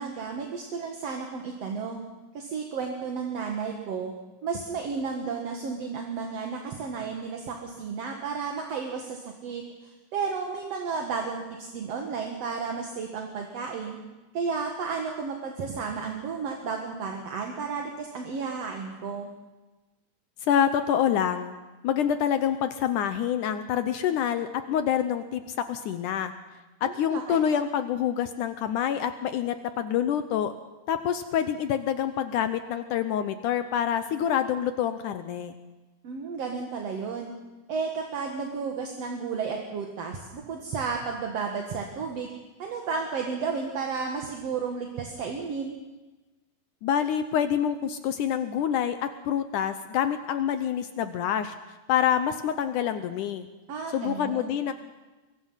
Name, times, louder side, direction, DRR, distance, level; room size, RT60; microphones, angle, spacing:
voice 1, 0.0-2.0 2.3-4.1 4.4-14.0 14.3-19.3 26.8-27.4 36.0-37.3 37.7-42.3 42.6-45.8 53.7-54.6, right 5 dB, 50° right, 2 dB, 2.2 m, -33 dB
voice 2, 20.4-21.6 21.8-26.3 26.8-30.5 30.9-35.6 46.8-51.6 51.9-53.5 53.9-54.7, left 9 dB, 75° left, 10 dB, 1.9 m, -27 dB
23.5 x 22.5 x 5.7 m, 1.2 s
omnidirectional pair, 4.5 m